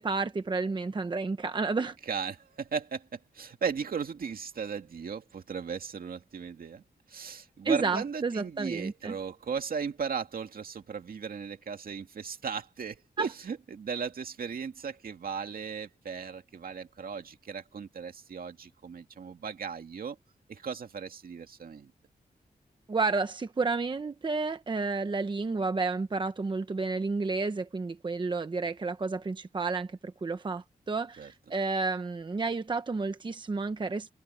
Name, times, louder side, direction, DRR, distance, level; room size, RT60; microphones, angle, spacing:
voice 1, 0.0-2.0 7.6-9.1 13.2-13.3 22.9-34.1, right 4 dB, 30° right, 0.9 m, -31 dB
voice 2, 2.1-6.8 7.1-20.2 20.5-21.9 31.2-31.3, right 6 dB, 70° right, 2.3 m, -36 dB
open air
wide cardioid pair, 160°, 16 cm